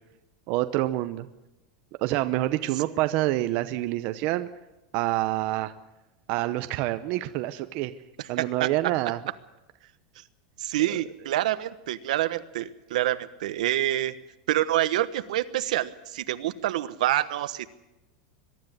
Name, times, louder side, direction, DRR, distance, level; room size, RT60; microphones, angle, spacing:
voice 1, 0.5-1.3 2.0-4.5 4.9-5.7 6.3-7.9 8.3-9.2 10.9-11.0, right 16 dB, 40° right, 10 dB, 0.7 m, -27 dB
voice 2, 8.4-8.7 10.6-14.1 14.5-17.7, right 14 dB, 75° right, 13 dB, 1.2 m, -27 dB
22.5 x 12.5 x 9.3 m, 0.98 s
supercardioid pair, 170°, 4 cm